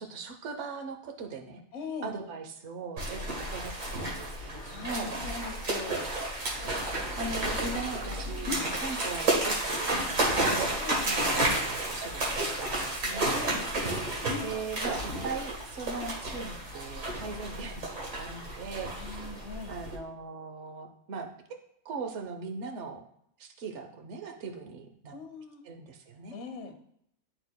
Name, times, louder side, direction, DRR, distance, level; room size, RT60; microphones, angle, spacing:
voice 1, 0.0-1.6 2.0-5.1 7.2-10.8 11.1-13.3 14.4-19.3 19.7-21.3 21.8-23.0 23.4-25.1 25.6-26.4, right 4 dB, 65° right, 4 dB, 1.1 m, -39 dB
voice 2, 1.7-2.1 4.6-6.1 10.8-11.0 13.2-13.7 18.9-19.8 25.1-25.6 26.3-26.7, left 4 dB, 60° left, 4 dB, 1.2 m, -41 dB
sound 1, 3.0-20.0, right 1 dB, 80° right, 1.9 m, -31 dB
sound 2, 6.5-9.0 9.9-10.9, left 2 dB, 25° right, 1.8 m, -42 dB
11.0 x 3.9 x 2.2 m, 0.73 s
omnidirectional pair, 1.4 m